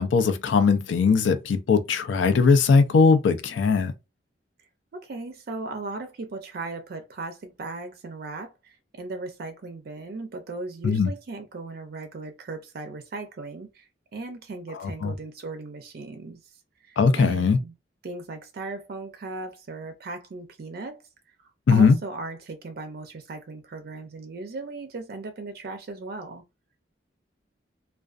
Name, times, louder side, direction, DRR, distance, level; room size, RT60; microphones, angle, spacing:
voice 1, 0.0-3.9 10.8-11.1 14.8-15.1 17.0-17.6 21.7-22.0, left 5 dB, 85° left, 0.4 m, -20 dB
voice 2, 4.9-16.5 16.8-17.7 18.0-21.0 21.7-26.4, right 3 dB, 55° right, 0.4 m, -37 dB
2.4 x 2.2 x 2.4 m
head